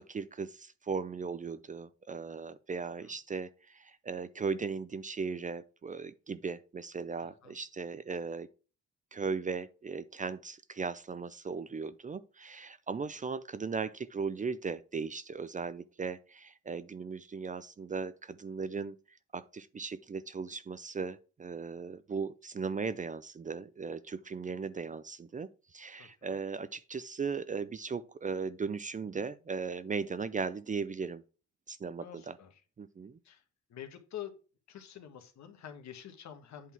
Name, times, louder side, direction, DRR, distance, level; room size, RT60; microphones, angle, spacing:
voice 1, 0.0-8.5 9.1-19.0 19.3-31.2 31.7-32.4 32.8-33.2, right 5 dB, 25° right, 0.5 m, -37 dB
voice 2, 7.2-7.6 26.0-26.4 32.0-32.6 33.2-33.4 33.7-34.3 34.7-36.7, left 10 dB, 65° left, 1.4 m, -47 dB
8.4 x 3.6 x 5.9 m
cardioid pair, 90°, 30 cm